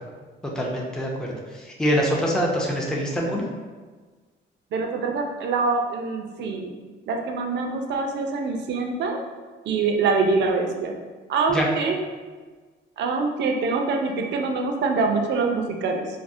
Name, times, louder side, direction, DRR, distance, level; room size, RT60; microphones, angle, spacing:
voice 1, 0.4-3.4 11.5-11.7, equal, 5° left, -2 dB, 0.4 m, -25 dB
voice 2, 4.7-6.7 7.1-9.2 9.6-10.9 11.3-12.0 13.0-16.1, right 4 dB, 60° right, 3 dB, 0.4 m, -24 dB
3.4 x 2.0 x 2.5 m, 1.4 s
cardioid pair, 90°, 20 cm